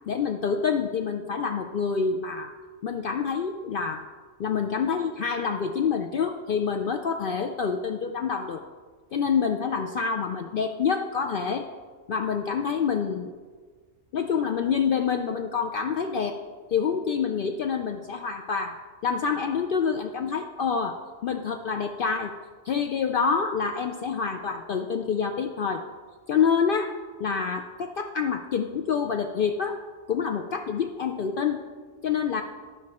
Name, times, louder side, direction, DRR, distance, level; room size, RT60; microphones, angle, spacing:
voice 1, 0.1-2.5 2.8-4.0 4.4-8.6 9.1-11.7 12.1-13.3 14.1-16.4 16.7-18.8 19.0-21.0 21.2-22.3 22.6-25.8 26.3-26.9 27.2-29.8 30.1-31.6 32.0-32.4, left 6 dB, 60° left, 4 dB, 0.6 m, -27 dB
12.5 x 5.2 x 4.2 m, 1.5 s
omnidirectional pair, 1.3 m